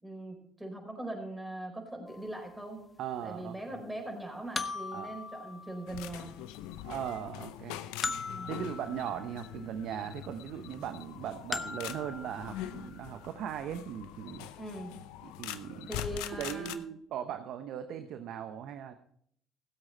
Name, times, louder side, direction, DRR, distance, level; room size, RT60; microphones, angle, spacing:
voice 1, 0.0-2.8 3.2-6.3 8.3-8.5 14.6-15.0 15.9-16.8, right 1 dB, 10° right, 2 dB, 4.8 m, -41 dB
sound 1, 2.1-2.2 4.5-6.4 8.0-9.7 11.5-12.9, left 4 dB, 30° left, 0.9 m, -39 dB
voice 2, 3.0-3.8 4.9-5.2 6.8-7.8 8.5-14.5 15.2-15.9 16.4-18.9, right 9 dB, 65° right, 9 dB, 0.8 m, -39 dB
sound 2, 5.9-16.8, left 13 dB, 80° left, 0.6 m, -43 dB
16.5 x 7.9 x 4.4 m, 0.66 s
hypercardioid pair, 65°, 0 cm